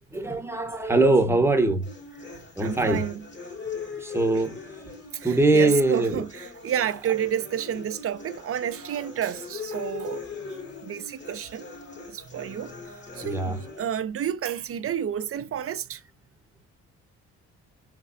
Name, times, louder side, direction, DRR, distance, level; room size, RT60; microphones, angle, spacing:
voice 1, 0.1-1.9 2.1-2.3 2.6-3.0 3.9-4.9 5.2-6.2 12.2-12.8 13.1-13.6, right 2 dB, 10° right, 1.0 m, -23 dB
sound 1, 1.8-13.8, left 5 dB, 35° left, 2.0 m, -40 dB
voice 2, 2.6-3.2 5.1-5.3 5.5-10.2 10.8-11.7 12.1-12.7 13.2-16.0, right 9 dB, 50° right, 0.6 m, -30 dB
5.2 x 3.3 x 2.5 m
cardioid pair, 90°, 30 cm